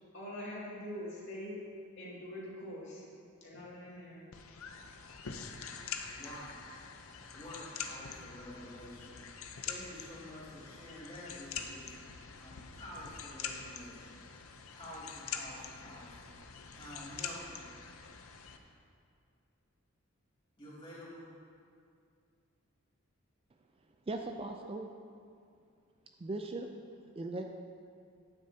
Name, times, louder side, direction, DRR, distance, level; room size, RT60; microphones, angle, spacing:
voice 1, 0.1-1.6 2.0-3.0 3.4-4.2, left 1 dB, 55° left, -6 dB, 2.4 m, -43 dB
sound 1, 4.3-18.6, left 6 dB, 70° left, 0.6 m, -45 dB
voice 2, 6.0-6.8 7.2-11.9 12.3-14.2 14.7-16.3 16.7-17.6 20.6-21.3, equal, 25° left, -9 dB, 2.6 m, -49 dB
voice 3, 24.1-24.9 26.2-26.7 27.2-27.5, right 2 dB, 25° right, 4 dB, 0.3 m, -38 dB
11.5 x 9.5 x 2.8 m, 2.4 s
head